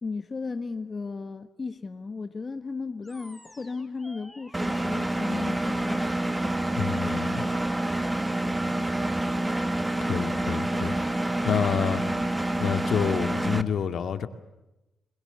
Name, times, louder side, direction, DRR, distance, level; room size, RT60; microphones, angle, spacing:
voice 1, 0.0-6.0, left 4 dB, 35° left, 1.4 m, -35 dB
Animal, 3.0-11.0, left 1 dB, 5° left, 3.6 m, -51 dB
Engine, 4.5-13.6, right 1 dB, 15° right, 1.7 m, -27 dB
voice 2, 6.8-7.4 10.0-11.0 11.4-12.0 12.6-14.3, left 7 dB, 70° left, 2.1 m, -28 dB
29.0 x 22.0 x 8.1 m
cardioid pair, 80°, 0 cm